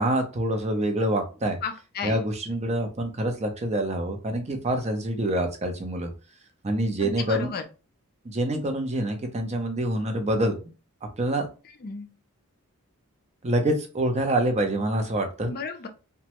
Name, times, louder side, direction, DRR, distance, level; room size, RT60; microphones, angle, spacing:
voice 1, 0.0-1.6 2.0-6.1 6.6-7.5 8.2-10.6 11.0-11.5 13.4-15.5, right 1 dB, 30° right, 4 dB, 0.6 m, -26 dB
voice 2, 1.6-2.1 7.0-7.6 11.8-12.1 15.5-15.9, left 5 dB, 45° left, 6 dB, 0.4 m, -33 dB
3.0 x 2.2 x 2.9 m, 0.33 s
head